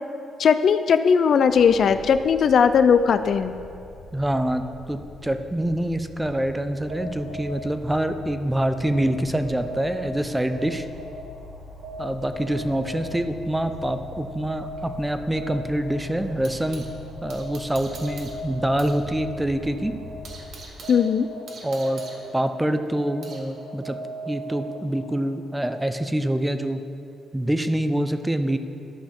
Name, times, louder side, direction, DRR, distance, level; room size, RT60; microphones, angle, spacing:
voice 1, 0.4-3.5 20.9-21.3, left 6 dB, 60° left, 10 dB, 0.3 m, -18 dB
sound 1, 1.5-20.7, left 2 dB, 90° left, 0.9 m, -43 dB
voice 2, 4.1-10.9 12.0-16.8 17.2-19.9 21.6-22.0 22.3-24.0 24.3-26.8 27.3-28.6, right 1 dB, 10° right, 9 dB, 0.5 m, -25 dB
sound 2, 6.8-25.3, equal, 90° right, 1.8 m, -39 dB
sound 3, 13.7-16.9 17.3-19.0 19.3-19.4 19.8-23.5, right 3 dB, 65° right, 1.3 m, -45 dB
11.5 x 5.6 x 4.4 m, 2.5 s
cardioid pair, 90°, 0 cm